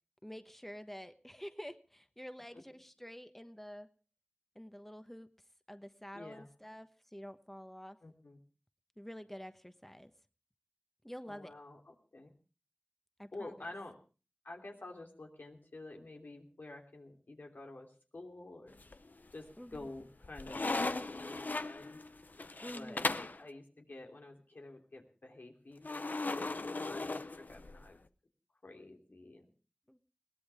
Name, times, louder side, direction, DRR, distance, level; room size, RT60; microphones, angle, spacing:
voice 1, 0.2-3.9 4.5-5.3 5.7-8.0 9.0-10.1 11.0-11.5 13.2-13.7 19.6-19.9 22.6-23.1 29.9-30.0, equal, 10° left, 9 dB, 1.2 m, -48 dB
voice 2, 6.1-6.5 8.0-8.4 11.3-12.3 13.3-14.0 14.4-18.7 19.3-22.0 22.7-28.0 28.6-29.5, left 2 dB, 90° left, 2 dB, 3.3 m, -50 dB
sound 1, 18.7-19.3 19.7-23.4 25.8-27.9, left 3 dB, 65° left, 0.8 m, -37 dB
21.5 x 17.5 x 3.5 m, 0.35 s
wide cardioid pair, 50°, 3 cm